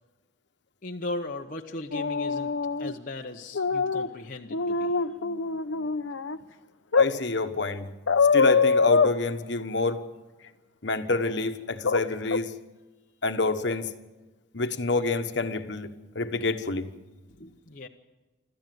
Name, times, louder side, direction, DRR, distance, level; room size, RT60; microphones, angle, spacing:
voice 1, 0.8-2.5 2.8-5.0 17.4-17.9, left 2 dB, 45° left, 1 dB, 0.9 m, -37 dB
sound 1, 1.9-2.9 3.5-4.1 4.5-6.4 6.9-7.1 8.1-9.1 11.8-12.0 12.3-12.4, left 4 dB, 80° left, 0.8 m, -24 dB
voice 2, 6.9-7.8 8.3-10.0 10.8-12.5 13.2-13.9 14.5-15.9 16.1-16.9, left 3 dB, 60° left, 8 dB, 1.3 m, -27 dB
26.5 x 14.0 x 7.8 m, 1.2 s
head